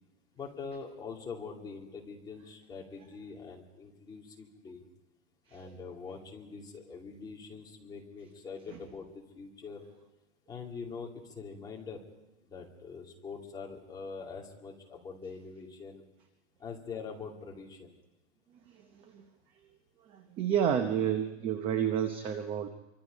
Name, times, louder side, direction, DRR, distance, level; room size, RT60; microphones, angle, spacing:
voice 1, 0.3-4.8 5.5-9.9 10.5-12.0 12.4-16.1 16.6-17.9, left 5 dB, 10° left, -1 dB, 2.7 m, -44 dB
voice 2, 20.4-22.7, right 9 dB, 15° right, 8 dB, 0.7 m, -29 dB
28.0 x 25.0 x 5.3 m, 1.1 s
hypercardioid pair, 165°, 38 cm